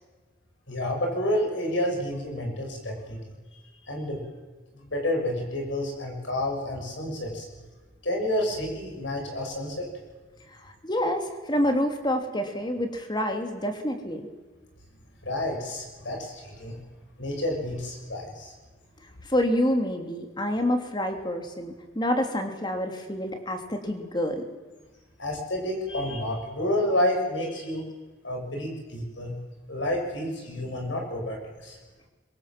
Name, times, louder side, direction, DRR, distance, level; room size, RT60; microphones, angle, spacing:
voice 1, 0.7-3.2 3.8-4.2 4.7-7.4 8.0-9.9 15.2-16.8 17.2-18.5 25.2-27.8 28.2-29.3 29.7-31.8, left 1 dB, 70° left, 1 dB, 6.7 m, -29 dB
voice 2, 10.6-14.3 19.3-24.4, left 1 dB, 25° left, 5 dB, 3.0 m, -27 dB
25.5 x 23.0 x 7.7 m, 1.3 s
head